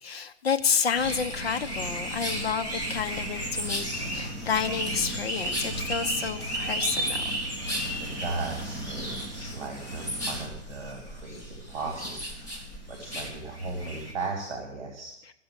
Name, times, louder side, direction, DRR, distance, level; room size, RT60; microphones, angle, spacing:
voice 1, 0.0-3.8 4.1-7.2 9.4-9.6 11.3-11.4, left 6 dB, 55° left, 8 dB, 1.1 m, -30 dB
sound 1, 0.9-14.1, equal, 10° left, 2.0 m, -33 dB
voice 2, 8.0-15.1, right 3 dB, 40° right, 1 dB, 2.9 m, -37 dB
14.5 x 6.8 x 8.3 m, 0.82 s
hypercardioid pair, 170°, 36 cm